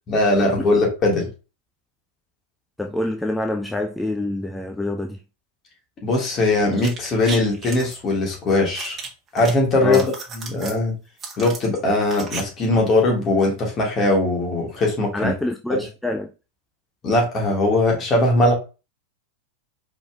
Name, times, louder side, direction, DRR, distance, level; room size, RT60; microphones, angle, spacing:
voice 1, 0.1-1.3 6.0-9.0 9.3-10.9 11.4-15.3 15.7-15.8 17.0-18.5, left 2 dB, 30° left, 1.8 m, -20 dB
voice 2, 2.8-5.2 9.8-10.1 15.1-16.3, left 2 dB, 5° left, 0.3 m, -26 dB
sound 1, 6.7-7.9 8.7-9.5 9.8-10.8 11.2-12.4 12.7-12.8, right 4 dB, 25° right, 0.9 m, -34 dB
5.0 x 3.5 x 2.3 m
figure-of-eight pair, 90°, 0 cm